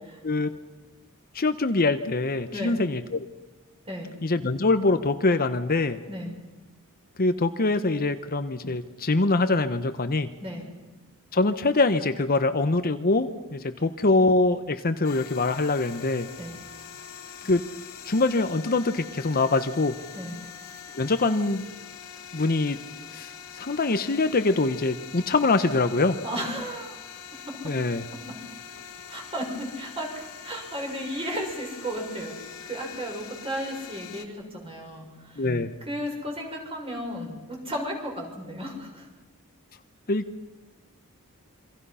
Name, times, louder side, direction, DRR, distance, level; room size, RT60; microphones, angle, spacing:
voice 1, 1.3-3.3 4.2-6.0 7.2-10.3 11.3-16.3 17.4-17.6 18.0-19.9 21.0-21.6 22.3-22.8 23.1-26.2 27.6-28.0 35.4-35.7 40.1-40.2, left 3 dB, 40° left, 9 dB, 0.9 m, -24 dB
voice 2, 13.5-13.9 16.4-16.6 20.1-20.4 26.2-27.0 27.5-27.6 29.1-32.4 32.6-35.5 35.9-39.1, equal, 25° right, 1 dB, 6.1 m, -34 dB
sound 1, 15.0-34.3, left 8 dB, 65° left, 1.9 m, -43 dB
28.0 x 25.0 x 5.7 m, 1.1 s
head